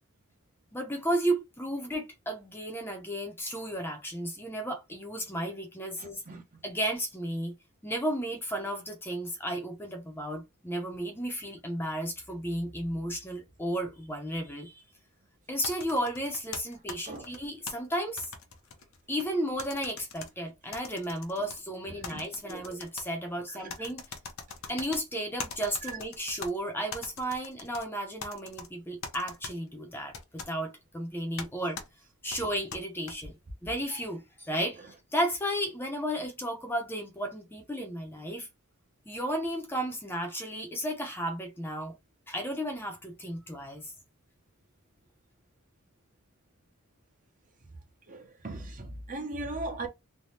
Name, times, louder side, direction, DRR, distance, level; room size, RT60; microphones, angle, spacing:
voice 1, 0.7-6.2 6.6-7.5 7.8-14.8 15.5-18.3 19.1-24.0 24.7-31.8 32.2-33.4 33.6-38.5 39.1-41.9 42.3-43.9, equal, 10° left, 0.6 m, -33 dB
voice 2, 6.0-6.4 17.1-17.3 22.1-22.2 22.5-22.6 25.9-26.0 48.1-49.9, right 2 dB, 40° right, 0.7 m, -38 dB
sound 1, 15.6-17.7 18.2-19.3 19.6-20.3 20.7-21.6 22.0-23.1 23.7-25.0 25.4-26.5 26.9-27.8 28.2-28.7 29.0-29.5 30.1-30.5 31.4-31.5 31.8-31.9 32.3-33.1, left 5 dB, 75° left, 0.7 m, -41 dB
3.3 x 2.2 x 2.7 m
head